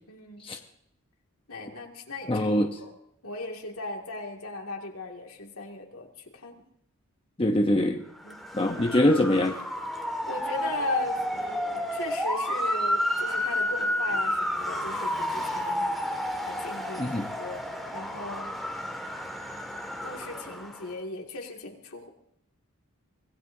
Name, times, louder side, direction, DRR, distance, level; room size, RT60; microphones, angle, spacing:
voice 1, 0.1-0.6 1.5-2.9 3.2-6.6 8.2-8.4 10.3-15.9 16.4-18.5 20.0-22.1, left 2 dB, 70° left, 1 dB, 2.4 m, -38 dB
voice 2, 2.3-2.8 7.4-8.0 8.5-9.6 17.0-17.3, left 1 dB, 25° left, 4 dB, 0.9 m, -23 dB
Motor vehicle (road) / Siren, 8.2-20.9, equal, ahead, 1.9 m, -31 dB
25.0 x 18.0 x 2.8 m, 0.73 s
head